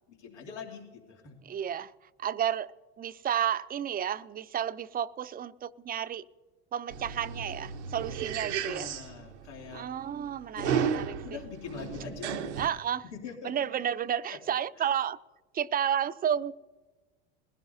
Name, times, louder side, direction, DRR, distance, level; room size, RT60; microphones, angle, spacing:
voice 1, 0.1-1.3 8.5-9.9 10.5-12.6 13.1-13.7 14.3-14.4 14.8-14.9, left 6 dB, 90° left, 2.7 m, -43 dB
voice 2, 1.4-1.9 2.2-2.7 3.0-6.2 6.7-8.9 9.7-11.1 12.6-13.0 13.4-15.2 15.5-16.5, right 9 dB, 25° right, 0.5 m, -31 dB
sound 1, 6.9-12.7, right 7 dB, 90° right, 1.0 m, -34 dB
21.5 x 16.0 x 2.7 m
hypercardioid pair, 85°, 34 cm